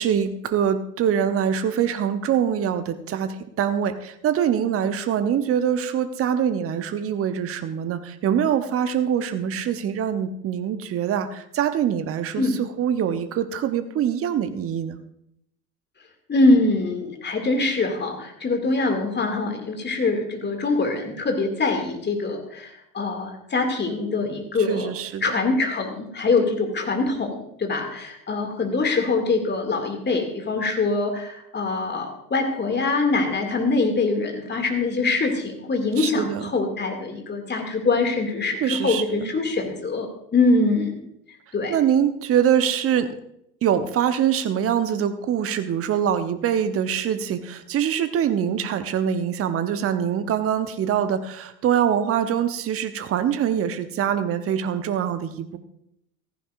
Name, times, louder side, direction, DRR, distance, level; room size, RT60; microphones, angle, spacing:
voice 1, 0.0-15.0 24.7-25.3 36.0-36.4 38.6-39.3 41.7-43.1 43.6-55.6, right 9 dB, 30° right, 11 dB, 0.9 m, -24 dB
voice 2, 16.3-24.9 25.2-41.0 41.5-41.8, left 3 dB, 20° left, 3 dB, 2.4 m, -23 dB
15.5 x 14.5 x 2.6 m, 0.76 s
figure-of-eight pair, 70°, 48 cm